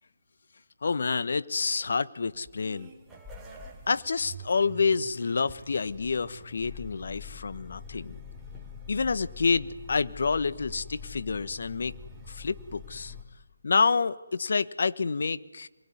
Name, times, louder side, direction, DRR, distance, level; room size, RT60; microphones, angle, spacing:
voice 1, 0.8-2.9 3.9-8.2 8.9-11.9 12.3-13.1 13.6-15.7, left 4 dB, 60° left, 16 dB, 1.2 m, -28 dB
sound 1, 2.3-13.2, left 3 dB, 5° right, 4.4 m, -45 dB
28.0 x 21.0 x 9.7 m, 1.1 s
figure-of-eight pair, 150°, 0 cm